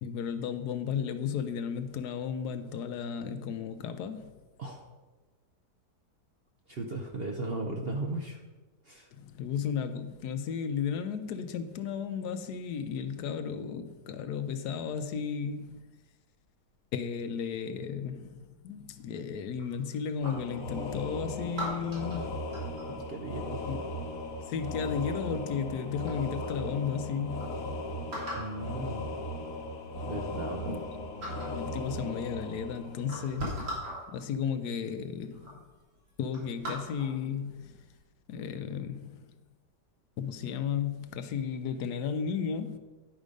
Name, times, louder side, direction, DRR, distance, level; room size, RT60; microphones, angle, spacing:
voice 1, 0.0-4.3 9.1-15.8 16.9-22.4 23.6-24.0 24.5-27.6 30.7-30.8 31.5-35.5 36.2-37.8 38.3-39.2 40.2-42.8, left 7 dB, 75° left, 1.1 m, -34 dB
voice 2, 6.7-8.4 8.9-9.1 22.9-23.7 28.4-29.1 30.1-30.8, right 2 dB, 55° right, 0.7 m, -36 dB
sound 1, 19.6-20.6 21.5-23.0 24.6-25.0 25.7-25.8 26.0-26.6 27.1-27.2 27.4-27.5 28.1-28.6 29.6-29.7 30.1-30.9 31.2-31.6 32.5-32.6 33.0-34.0 34.9-35.0 35.3-35.6 35.9-37.2 37.7-37.9, right 1 dB, 75° right, 3.2 m, -39 dB
sound 2, 20.2-33.7, left 1 dB, 60° left, 1.4 m, -37 dB
10.0 x 5.0 x 5.1 m
omnidirectional pair, 1.8 m